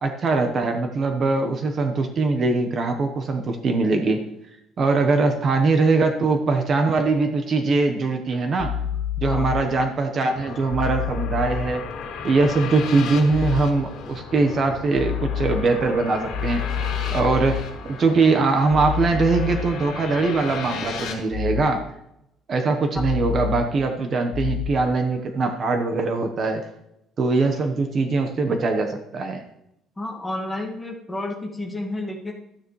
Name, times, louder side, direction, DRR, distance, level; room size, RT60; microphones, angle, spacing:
voice 1, 0.0-4.3 4.8-8.7 9.2-11.8 12.2-16.7 17.1-21.8 22.5-26.6 27.2-29.4, right 3 dB, 35° right, 6 dB, 1.0 m, -22 dB
sound 1, 8.6-9.6 10.7-11.6 13.3-13.6 15.0-15.6 16.3-17.6 18.7-19.6 21.3-21.6 23.0-23.6 24.3-24.7, left 8 dB, 30° left, 3.4 m, -27 dB
sound 2, 10.3-21.1, left 5 dB, 65° left, 2.3 m, -35 dB
voice 2, 30.0-32.3, left 1 dB, 10° left, 1 dB, 1.6 m, -30 dB
13.0 x 9.6 x 3.2 m, 0.80 s
cardioid pair, 160°, 0 cm